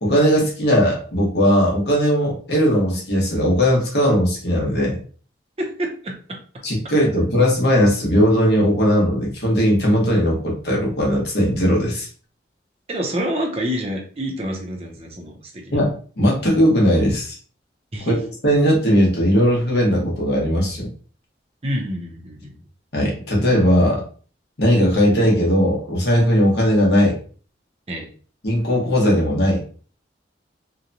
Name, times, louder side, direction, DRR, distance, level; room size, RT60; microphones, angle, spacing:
voice 1, 0.0-5.0 6.6-12.1 15.7-17.4 18.0-18.1 18.4-20.9 22.9-24.0 24.6-27.2 28.4-29.6, equal, 60° left, -2 dB, 1.0 m, -18 dB
voice 2, 5.6-6.4 12.9-15.6 17.9-18.2 21.6-22.6 27.9-28.1, equal, 35° right, 1 dB, 0.6 m, -27 dB
2.8 x 2.2 x 2.5 m, 0.41 s
head